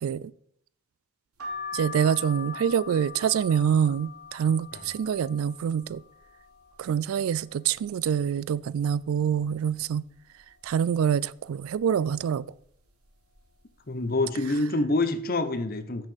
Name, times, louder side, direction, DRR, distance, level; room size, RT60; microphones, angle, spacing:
voice 1, 0.0-0.3 1.7-6.0 6.8-10.0 10.6-12.4, right 8 dB, 70° right, 0.3 m, -26 dB
sound 1, 1.4-7.1 7.5-8.3 8.7-8.8 9.0-10.1 10.6-10.9 11.7-12.0 12.8-13.1 13.3-13.5, left 5 dB, 90° right, 2.3 m, -42 dB
voice 2, 13.9-16.1, left 2 dB, 40° left, 0.7 m, -26 dB
6.5 x 6.1 x 7.2 m
head